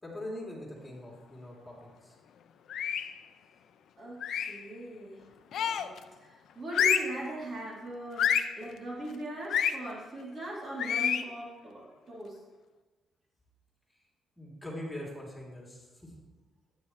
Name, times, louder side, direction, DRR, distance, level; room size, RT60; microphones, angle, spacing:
voice 1, 0.0-2.1 14.4-16.1, left 1 dB, 10° left, -3 dB, 3.5 m, -42 dB
sound 1, 2.7-3.2 4.2-4.6 5.5-6.0 6.7-7.2 8.2-8.6 9.5-9.8 10.8-11.3, left 8 dB, 70° left, 0.6 m, -28 dB
voice 2, 4.0-5.2 5.5-8.3 8.6-12.4, right 1 dB, 40° right, -4 dB, 3.3 m, -40 dB
13.5 x 9.5 x 3.3 m, 1.2 s
cardioid pair, 90°, 0 cm